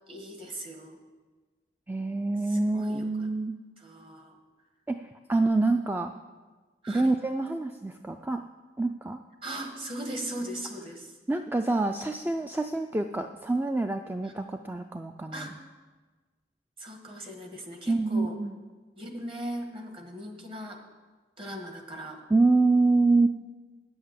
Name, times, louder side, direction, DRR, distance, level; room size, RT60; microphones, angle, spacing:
voice 1, 0.1-1.0 2.5-3.3 3.8-4.4 6.8-7.1 9.4-11.1 14.2-14.3 15.3-15.5 16.8-18.4 19.0-20.8 21.4-22.2, right 1 dB, 30° right, 3 dB, 1.4 m, -39 dB
voice 2, 1.9-3.6 4.9-5.0 5.3-6.1 6.9-8.4 8.8-9.2 11.3-15.5 17.9-18.5 22.3-23.3, right 3 dB, 10° right, 6 dB, 0.3 m, -26 dB
9.4 x 7.9 x 7.4 m, 1.3 s
head